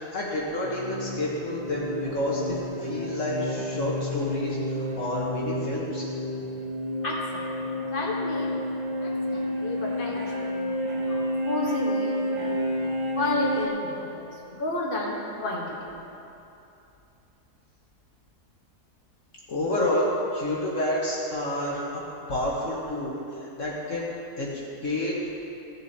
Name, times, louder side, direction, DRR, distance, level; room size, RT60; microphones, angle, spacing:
voice 1, 0.1-6.0 19.5-21.8 22.3-24.1 24.4-25.2, left 1 dB, 55° left, -5 dB, 1.7 m, -29 dB
sound 1, 0.6-13.7, left 1 dB, 25° right, 1.0 m, -30 dB
voice 2, 7.0-8.5 9.0-15.9, left 2 dB, 35° left, -4 dB, 1.6 m, -32 dB
15.5 x 7.6 x 4.2 m, 2.8 s
omnidirectional pair, 1.7 m